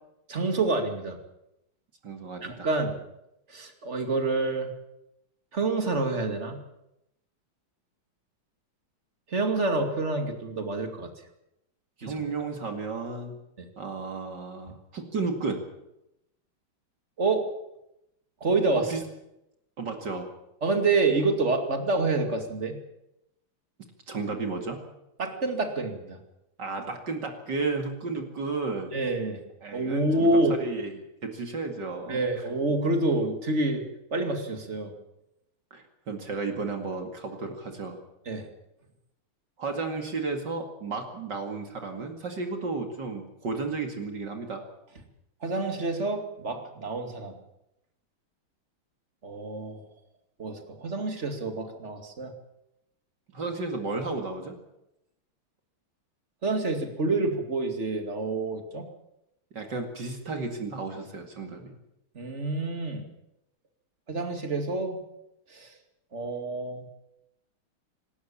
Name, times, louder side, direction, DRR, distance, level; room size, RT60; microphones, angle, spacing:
voice 1, 0.3-1.2 2.4-3.0 3.5-4.7 5.5-6.6 9.3-11.1 12.0-12.2 13.6-13.7 17.2-17.4 18.4-18.9 20.6-22.8 25.2-26.2 28.9-29.4 29.7-30.6 32.1-33.8 34.1-34.9 38.3-38.5 45.4-47.3 49.2-49.8 50.4-52.3 56.4-58.9 62.1-63.1 64.1-65.0 65.5-65.7 66.1-66.8, right 2 dB, 35° right, 5 dB, 2.7 m, -27 dB
voice 2, 2.0-2.7 12.0-13.4 13.8-15.6 18.8-19.0 19.8-20.3 24.1-24.9 26.6-28.9 29.6-32.2 35.7-38.0 39.6-44.6 53.3-54.6 59.5-61.7, right 3 dB, 55° right, 4 dB, 2.8 m, -33 dB
26.0 x 13.0 x 8.7 m, 0.86 s
omnidirectional pair, 2.3 m